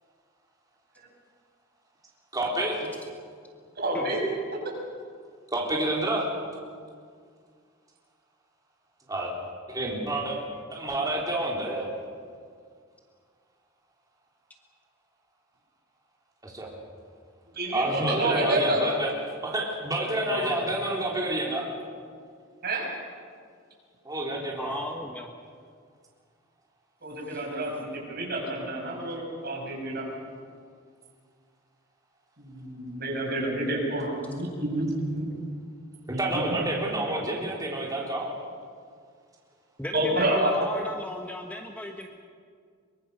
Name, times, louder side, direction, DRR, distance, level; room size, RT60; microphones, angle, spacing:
voice 1, 2.3-2.8 5.5-6.2 9.1-9.3 9.7-10.4 10.7-11.9 16.4-16.7 17.7-19.1 19.4-21.7 24.0-24.8 36.1-38.3, right 1 dB, 20° right, -3 dB, 3.7 m, -28 dB
voice 2, 3.8-4.2 4.5-4.6 17.5-18.8 22.6-22.9 27.0-30.1 32.4-35.3 36.3-36.6 39.9-40.7, right 1 dB, 50° right, -1 dB, 6.8 m, -28 dB
voice 3, 20.3-20.7 24.6-25.3 27.3-27.4 39.8-42.1, left 1 dB, 10° left, 3 dB, 1.2 m, -36 dB
24.0 x 23.0 x 6.7 m, 2.1 s
head